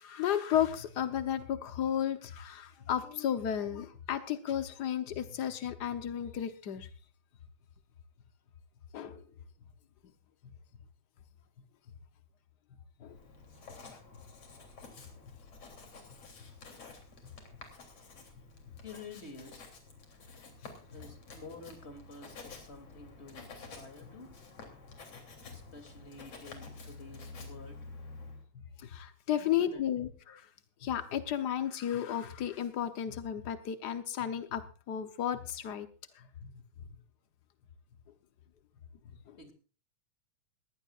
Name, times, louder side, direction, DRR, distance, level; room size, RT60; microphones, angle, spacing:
voice 1, 0.0-6.9 8.9-9.2 13.0-13.2 13.8-14.0 28.8-30.5 30.8-34.6 34.9-35.9 36.1-36.5 39.3-39.4, left 10 dB, 90° left, 10 dB, 0.9 m, -33 dB
Writing, 13.1-28.4, left 3 dB, 55° left, 4.2 m, -50 dB
voice 2, 18.8-19.8 20.9-24.3 25.5-27.8 29.3-29.8 30.3-30.4 39.4-39.5, left 3 dB, 20° left, 6 dB, 2.8 m, -50 dB
20.5 x 15.5 x 2.5 m, 0.36 s
omnidirectional pair, 3.3 m